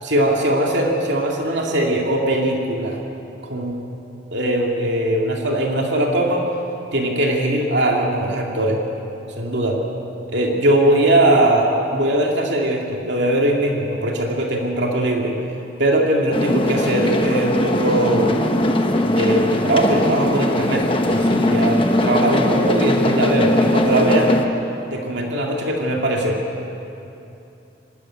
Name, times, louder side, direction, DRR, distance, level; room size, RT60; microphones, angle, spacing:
voice 1, 0.0-3.0 3.4-3.9 4.3-6.4 6.9-8.8 9.4-9.8 10.3-15.3 15.8-18.3 19.0-24.3 24.9-26.4, right 1 dB, 65° right, 0 dB, 2.4 m, -20 dB
sound 1, 16.3-24.5, left 1 dB, 25° left, 1.1 m, -20 dB
24.5 x 13.5 x 9.2 m, 2.8 s
head